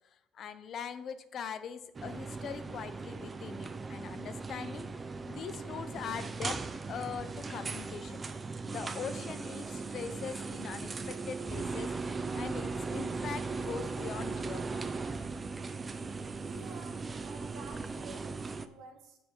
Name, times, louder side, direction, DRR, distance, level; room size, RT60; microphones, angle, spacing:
voice 1, 0.3-4.9 5.3-6.6 6.9-8.2 8.6-11.9 12.3-14.8, left 7 dB, 50° left, 11 dB, 0.7 m, -41 dB
sound 1, 1.9-18.7, right 4 dB, 25° right, 0.5 m, -38 dB
voice 2, 16.4-19.2, right 4 dB, 75° right, 4 dB, 1.6 m, -51 dB
7.3 x 4.9 x 6.1 m, 0.84 s
cardioid pair, 110°, 0 cm